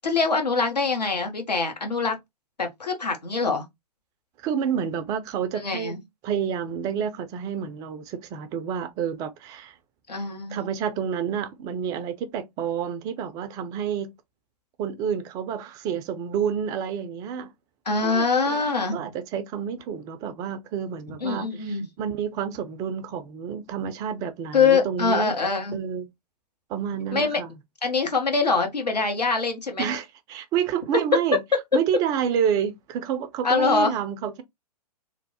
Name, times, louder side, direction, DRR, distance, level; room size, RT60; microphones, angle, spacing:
voice 1, 0.0-2.2 2.6-3.6 5.5-6.0 10.1-10.6 17.9-19.0 21.2-21.8 24.5-25.8 27.1-27.4 27.8-29.9 33.4-33.9, left 4 dB, 85° left, 1.0 m, -24 dB
voice 2, 4.4-6.0 6.2-9.8 10.5-14.1 14.8-17.5 18.0-18.6 18.9-25.3 25.7-26.1 26.7-27.6 29.8-31.4 31.7-34.4, right 8 dB, 20° right, 0.3 m, -29 dB
3.0 x 2.0 x 2.7 m
figure-of-eight pair, 115°, 20 cm